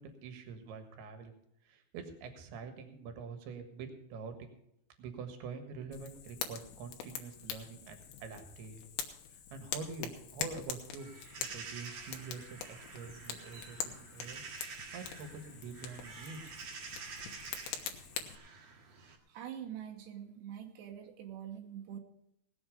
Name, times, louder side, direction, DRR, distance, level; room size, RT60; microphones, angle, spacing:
voice 1, 0.0-1.4 1.6-4.5 5.0-9.0 9.3-11.1 11.4-16.7, right 5 dB, 75° right, 6 dB, 3.5 m, -46 dB
Fire, 5.9-18.4, left 9 dB, 90° left, 3.3 m, -44 dB
sound 1, 11.0-19.2, right 5 dB, 50° right, 2.3 m, -48 dB
voice 2, 19.3-22.0, right 9 dB, 90° right, 2 dB, 3.3 m, -45 dB
19.0 x 7.9 x 5.2 m, 0.79 s
omnidirectional pair, 4.8 m